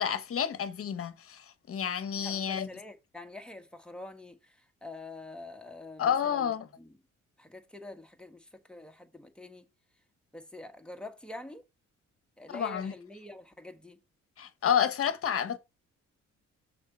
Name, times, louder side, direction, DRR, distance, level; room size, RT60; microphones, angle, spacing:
voice 1, 0.0-2.7 6.0-6.7 12.5-12.9 14.4-15.6, left 8 dB, 50° left, 1.1 m, -30 dB
voice 2, 2.2-6.9 7.4-9.7 10.3-11.6 12.4-14.0, left 2 dB, 5° left, 1.3 m, -46 dB
6.5 x 4.0 x 5.4 m
cardioid pair, 90°, 30 cm